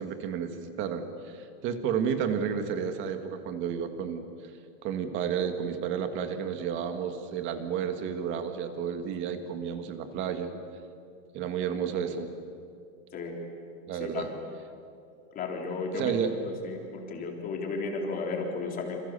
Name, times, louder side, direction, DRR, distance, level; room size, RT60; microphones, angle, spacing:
voice 1, 0.0-4.2 4.8-10.5 11.3-12.3 13.9-14.3 15.9-16.3, right 7 dB, 30° right, 8 dB, 2.0 m, -31 dB
voice 2, 13.9-14.3 15.3-16.1 16.6-19.0, left 4 dB, 20° left, 1 dB, 3.5 m, -34 dB
28.5 x 27.5 x 7.0 m, 2.5 s
supercardioid pair, 170°, 40 cm